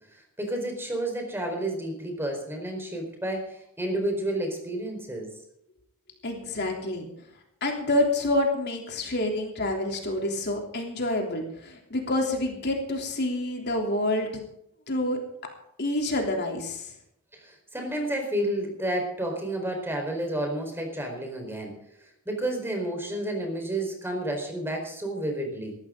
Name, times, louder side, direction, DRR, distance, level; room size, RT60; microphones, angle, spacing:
voice 1, 0.1-5.3 17.3-21.7 22.3-25.8, right 1 dB, 10° right, 3 dB, 4.5 m, -31 dB
voice 2, 6.2-7.1 7.6-14.4 14.9-15.2 15.8-16.9, left 1 dB, 50° left, 2 dB, 3.3 m, -27 dB
20.5 x 14.5 x 3.9 m, 0.75 s
head